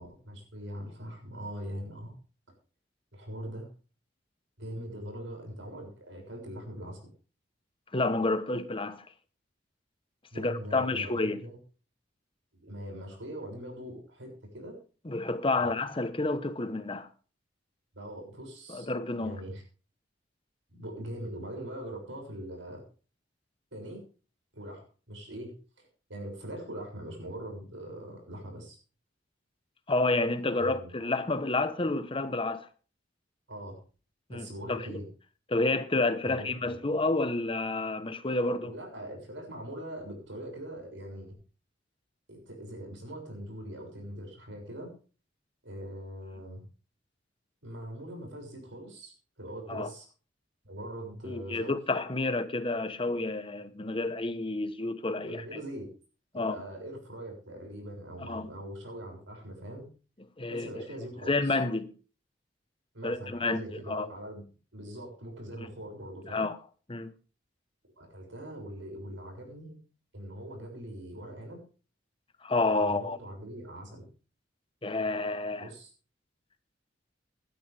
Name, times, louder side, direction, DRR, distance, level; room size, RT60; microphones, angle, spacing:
voice 1, 0.0-2.2 3.1-3.7 4.6-7.0 10.3-11.6 12.5-14.7 15.5-15.7 17.9-18.9 19.2-19.6 20.7-22.8 23.7-24.0 24.5-28.8 30.6-30.9 33.5-33.8 34.3-35.1 36.2-36.8 38.7-41.4 42.3-44.9 45.6-46.6 47.6-49.1 49.4-50.0 50.6-51.8 55.2-55.9 56.3-59.9 60.5-61.6 62.9-64.4 64.7-66.5 68.0-69.8 70.1-71.6 72.8-74.1 75.6-75.9, right 1 dB, 90° right, 6.7 m, -42 dB
voice 2, 7.9-9.0 10.4-11.4 15.0-17.1 18.7-19.4 29.9-32.7 34.3-34.8 35.5-38.7 49.7-49.9 51.2-55.6 56.3-56.6 58.2-58.5 60.4-60.8 61.3-61.9 63.0-64.1 66.3-66.6 66.9-67.1 72.4-73.2 74.8-75.7, left 2 dB, 30° left, 1.1 m, -29 dB
17.0 x 12.0 x 3.5 m
head